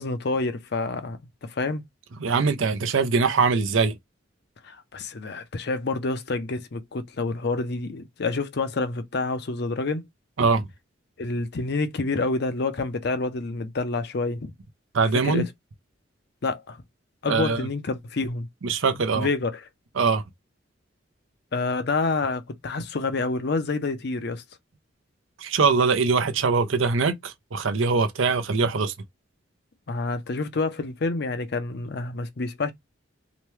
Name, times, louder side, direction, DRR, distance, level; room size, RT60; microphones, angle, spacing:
voice 1, 0.0-1.8 4.6-10.1 11.2-14.5 15.1-15.5 16.4-16.8 17.2-18.5 19.1-19.7 21.5-24.4 29.9-32.7, left 3 dB, 55° left, 0.6 m, -28 dB
voice 2, 2.2-3.9 10.4-10.7 14.9-15.4 17.3-17.6 18.6-19.3 20.0-20.2 25.4-28.9, right 4 dB, 85° right, 0.6 m, -22 dB
2.9 x 2.2 x 3.1 m
head